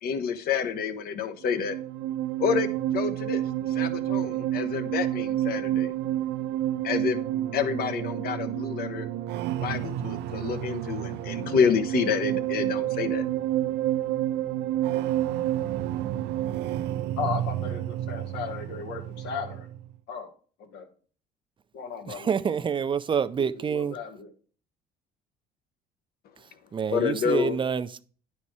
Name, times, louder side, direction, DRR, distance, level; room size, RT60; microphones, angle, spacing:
voice 1, 0.0-1.8 2.4-5.9 6.8-7.2 7.5-9.1 9.6-13.3 26.9-27.6, left 7 dB, 65° left, 1.0 m, -28 dB
sound 1, 1.4-19.9, right 13 dB, 85° right, 0.5 m, -29 dB
voice 2, 17.2-19.7 20.1-20.3 20.6-20.9 21.7-22.3 23.4-24.3, left 6 dB, 85° left, 1.7 m, -35 dB
voice 3, 22.1-24.0 26.7-28.0, right 7 dB, 30° right, 0.4 m, -27 dB
9.9 x 4.2 x 4.7 m
cardioid pair, 110°, 17 cm